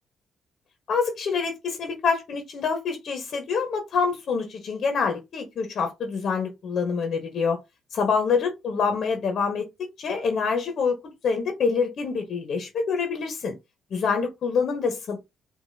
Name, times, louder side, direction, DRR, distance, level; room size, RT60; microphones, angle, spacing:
voice 1, 0.9-7.6 7.9-11.0 11.2-13.5 13.9-15.2, left 5 dB, 60° left, 1.3 m, -26 dB
5.2 x 2.8 x 2.8 m
cardioid pair, 90°, 0 cm